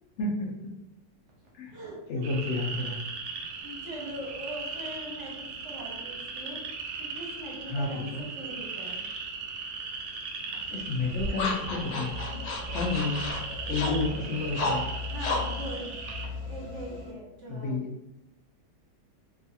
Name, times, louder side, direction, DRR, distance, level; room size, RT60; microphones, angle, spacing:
voice 1, 0.2-0.5 1.5-1.8 2.1-3.0 7.7-8.3 10.7-12.2 12.7-13.2 13.7-14.9 17.5-17.9, left 3 dB, 90° left, -1 dB, 0.6 m, -30 dB
voice 2, 1.7-2.2 3.6-6.6 7.0-9.0 12.3-12.5 13.7-14.0 15.1-15.9 16.4-17.8, right 1 dB, 55° right, -3 dB, 0.8 m, -41 dB
sound 1, 2.2-16.2, right 4 dB, 90° right, 1.3 m, -38 dB
sound 2, 10.5-17.0, left 3 dB, 70° left, 1.1 m, -35 dB
sound 3, 12.1-17.1, left 4 dB, 40° left, 0.5 m, -38 dB
3.0 x 2.3 x 2.7 m, 0.88 s
omnidirectional pair, 1.9 m